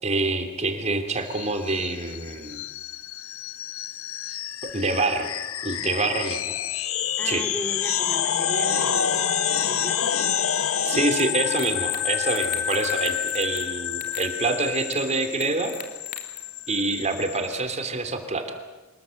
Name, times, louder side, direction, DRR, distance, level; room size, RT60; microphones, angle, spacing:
voice 1, 0.0-2.6 4.6-5.3 5.6-6.5 7.2-7.4 10.8-15.7 16.7-18.6, right 2 dB, 35° right, 7 dB, 3.1 m, -26 dB
sound 1, 1.3-17.5, left 9 dB, 85° left, 1.1 m, -28 dB
voice 2, 7.2-9.3 9.7-10.1, equal, 10° left, 4 dB, 2.5 m, -36 dB
sound 2, 11.2-11.3 11.6-12.0 12.3-13.7 13.9-14.3 14.9-15.0 15.4-16.4, left 7 dB, 40° left, 3.1 m, -39 dB
26.5 x 21.5 x 7.8 m, 1.2 s
head